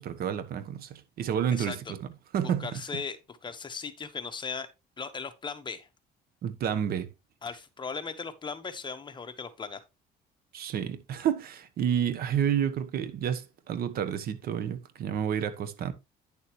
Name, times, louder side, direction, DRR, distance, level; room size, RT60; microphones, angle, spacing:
voice 1, 0.0-2.0 2.3-2.7 6.4-7.1 10.5-15.9, right 8 dB, 65° right, 1.2 m, -30 dB
voice 2, 1.5-1.9 2.4-4.7 5.0-5.9 7.4-9.8, left 5 dB, 25° left, 1.3 m, -38 dB
10.5 x 7.0 x 3.2 m
cardioid pair, 110°, 17 cm